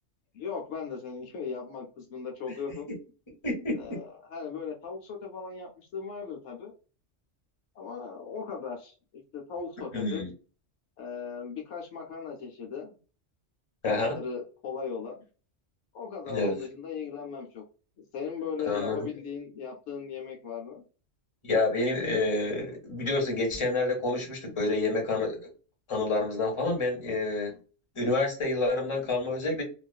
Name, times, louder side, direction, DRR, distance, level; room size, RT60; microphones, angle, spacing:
voice 1, 0.3-2.9 3.7-6.7 7.7-8.9 9.3-10.2 11.0-13.0 13.8-15.2 15.9-17.6 18.1-20.8, left 6 dB, 70° left, 1 dB, 0.9 m, -37 dB
voice 2, 3.4-4.0 9.9-10.3 13.8-14.2 16.3-16.7 18.6-19.1 21.4-25.4 25.9-27.6 28.0-29.6, left 2 dB, 25° left, 0 dB, 0.9 m, -28 dB
2.4 x 2.4 x 2.2 m, 0.36 s
omnidirectional pair, 1.3 m